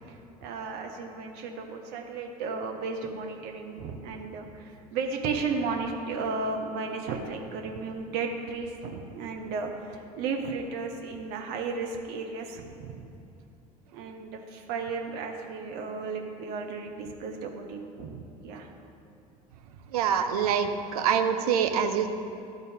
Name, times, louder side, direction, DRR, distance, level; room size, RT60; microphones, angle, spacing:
voice 1, 0.4-13.0 13.9-18.7, right 4 dB, 55° right, 3 dB, 0.9 m, -34 dB
voice 2, 19.9-22.1, right 7 dB, 75° right, 7 dB, 0.6 m, -25 dB
12.0 x 4.1 x 3.5 m, 2.8 s
figure-of-eight pair, 70°, 20 cm